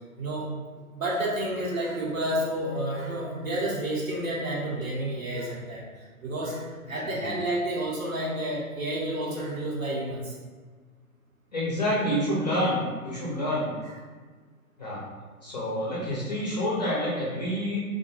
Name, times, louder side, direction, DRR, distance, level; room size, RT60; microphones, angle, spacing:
voice 1, 0.2-0.5 1.0-5.8 6.2-10.3, right 1 dB, 65° right, -5 dB, 0.9 m, -30 dB
voice 2, 6.8-7.4 11.5-13.7 14.8-15.0 15.4-17.8, equal, 30° left, -7 dB, 0.5 m, -28 dB
2.2 x 2.1 x 3.0 m, 1.5 s
figure-of-eight pair, 125°, 43 cm